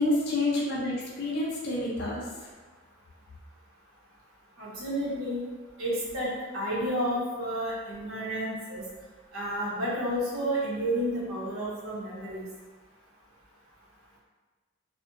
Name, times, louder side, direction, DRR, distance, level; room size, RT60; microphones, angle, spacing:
voice 1, 0.0-2.3, left 2 dB, 50° left, -4 dB, 0.4 m, -28 dB
voice 2, 4.6-5.4 5.8-8.8 9.3-12.4, equal, 80° right, -6 dB, 0.8 m, -31 dB
2.5 x 2.0 x 2.4 m, 1.3 s
head